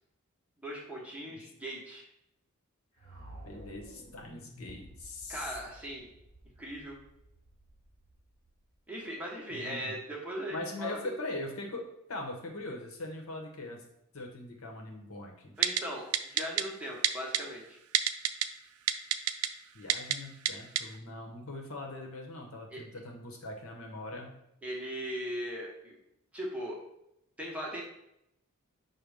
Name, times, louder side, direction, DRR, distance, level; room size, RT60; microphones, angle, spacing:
voice 1, 0.6-2.1 5.3-6.1 6.6-7.0 8.9-11.1 15.6-17.8 22.7-22.8 24.6-26.0 26.3-26.8 27.4-27.8, equal, 5° right, -3 dB, 0.9 m, -39 dB
sound 1, 3.0-9.0, right 1 dB, 30° left, 1.2 m, -52 dB
voice 2, 3.4-5.5 9.5-9.9 10.5-13.8 14.1-15.5 19.7-24.3, left 2 dB, 75° left, 1 dB, 0.9 m, -41 dB
Typing, 15.6-15.8 16.1-16.6 17.0-17.4 17.9-18.5 18.9-19.5 19.9-20.2 20.5-20.6 20.8-20.9, right 11 dB, 85° right, 0.3 m, -26 dB
5.3 x 2.1 x 4.7 m, 0.80 s
head